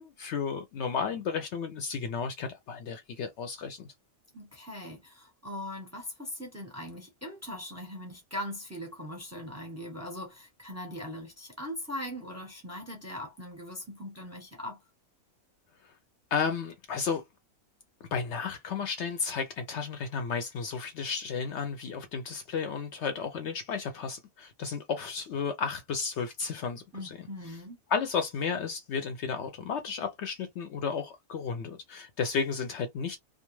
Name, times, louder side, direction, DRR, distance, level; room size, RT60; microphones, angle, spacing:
voice 1, 0.0-3.9 16.3-17.2 18.1-27.2 27.9-33.2, left 5 dB, 65° left, 0.8 m, -33 dB
voice 2, 4.3-14.8 26.9-27.8, left 1 dB, 15° right, 0.7 m, -40 dB
2.3 x 2.2 x 3.0 m
omnidirectional pair, 1.4 m